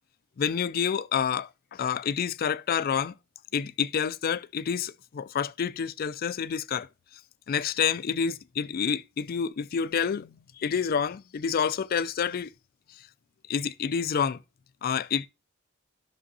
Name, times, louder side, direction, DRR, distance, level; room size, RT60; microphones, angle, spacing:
voice 1, 0.4-3.2 3.5-6.9 7.5-12.5 12.9-13.0 13.5-14.4 14.8-15.3, left 7 dB, 45° left, 0.3 m, -28 dB
11.5 x 6.1 x 2.7 m
head